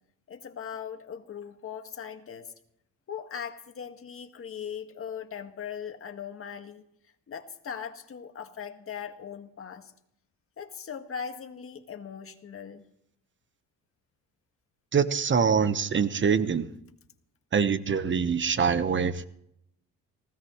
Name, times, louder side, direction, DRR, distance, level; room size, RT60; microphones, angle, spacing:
voice 1, 0.3-2.5 3.1-6.8 7.3-9.9 10.6-12.8, left 7 dB, 45° left, 7 dB, 1.8 m, -39 dB
voice 2, 14.9-16.6 17.5-19.3, right 6 dB, 40° right, 12 dB, 1.1 m, -24 dB
19.5 x 16.5 x 3.1 m, 0.74 s
cardioid pair, 90°, 30 cm